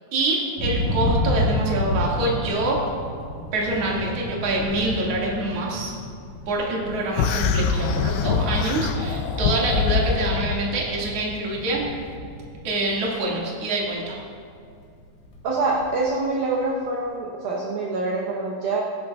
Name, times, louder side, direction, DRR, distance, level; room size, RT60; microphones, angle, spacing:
voice 1, 0.1-2.8 3.5-5.9 6.5-11.9 12.6-14.2, right 2 dB, 50° right, -4 dB, 2.1 m, -25 dB
Thunder, 0.6-13.4 13.8-14.3 14.7-16.2, left 1 dB, 60° left, 1.8 m, -31 dB
sound 1, 7.2-10.6, left 5 dB, 80° left, 2.4 m, -23 dB
voice 2, 15.4-18.8, right 3 dB, 75° right, -3 dB, 2.1 m, -25 dB
20.5 x 11.0 x 2.4 m, 2.4 s
omnidirectional pair, 5.5 m